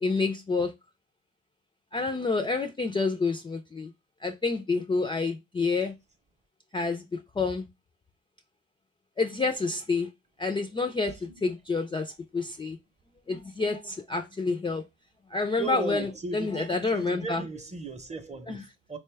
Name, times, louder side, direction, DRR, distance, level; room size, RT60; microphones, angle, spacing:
voice 1, 0.0-0.7 1.9-3.9 4.2-5.9 6.7-7.6 9.2-10.1 10.4-12.8 13.3-14.8 15.3-17.4 18.5-18.6, left 4 dB, 15° left, 0.3 m, -28 dB
voice 2, 15.6-19.0, right 3 dB, 25° right, 0.6 m, -36 dB
4.0 x 2.2 x 3.2 m
cardioid pair, 90°, 30 cm